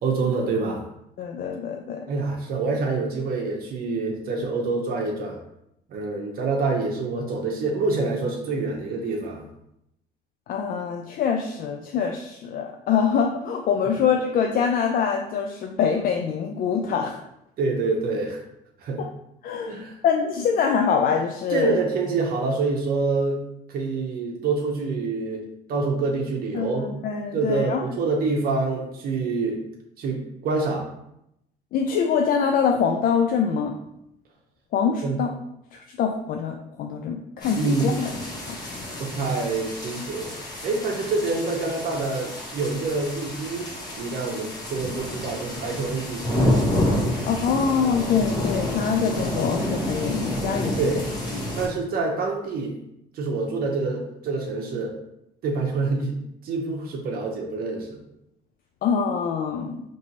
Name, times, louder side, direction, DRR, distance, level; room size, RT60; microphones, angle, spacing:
voice 1, 0.0-0.9 2.1-5.4 5.9-9.5 17.6-18.4 18.8-19.0 19.7-20.0 21.5-23.4 23.7-26.9 27.3-29.6 30.0-30.9 35.0-35.2 37.5-38.1 39.0-40.3 40.6-46.6 50.8-51.0 51.6-52.8 53.1-55.0 55.4-58.0, right 3 dB, 60° right, 0 dB, 0.8 m, -26 dB
voice 2, 1.2-2.1 10.5-17.2 19.0-19.1 19.4-21.7 26.5-27.8 31.7-33.8 34.7-35.3 35.7-38.1 38.5-38.6 47.3-50.8 58.8-59.8, left 6 dB, 55° left, 3 dB, 0.4 m, -24 dB
sound 1, 37.4-51.7, left 1 dB, 25° left, 1.1 m, -29 dB
4.3 x 3.0 x 2.8 m, 0.80 s
cardioid pair, 110°, 17 cm